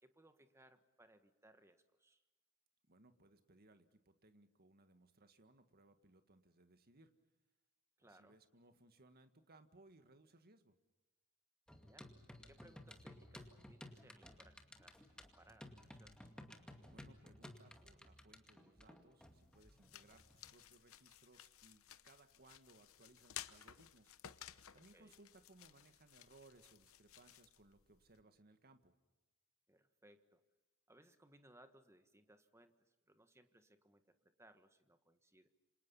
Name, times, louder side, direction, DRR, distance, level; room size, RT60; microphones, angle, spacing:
voice 1, 0.0-2.2 8.0-8.4 11.8-12.1 12.5-16.3 24.9-25.1 29.7-30.4 30.9-35.5, right 1 dB, 10° right, 9 dB, 1.6 m, -67 dB
voice 2, 2.9-7.1 8.0-10.8 16.9-24.5 24.7-29.0, right 2 dB, 45° right, 9 dB, 1.9 m, -66 dB
sound 1, 11.7-20.5, left 1 dB, 5° left, 2.3 m, -57 dB
sound 2, 19.2-28.2, left 11 dB, 65° left, 1.0 m, -57 dB
28.0 x 26.5 x 5.6 m, 1.1 s
head